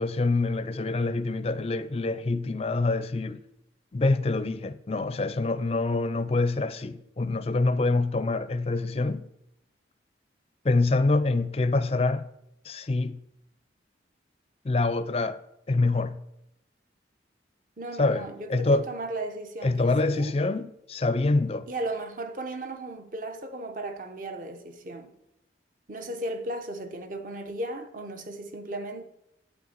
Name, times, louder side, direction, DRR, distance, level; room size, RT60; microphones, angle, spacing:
voice 1, 0.0-3.5 3.9-9.3 10.6-12.3 12.6-13.2 14.6-15.4 15.7-16.2 18.0-18.9 19.6-21.7, left 3 dB, 35° left, 0.4 m, -26 dB
voice 2, 17.8-20.3 21.7-25.1 25.9-29.0, right 1 dB, 45° right, 0.9 m, -36 dB
11.5 x 4.3 x 8.0 m
head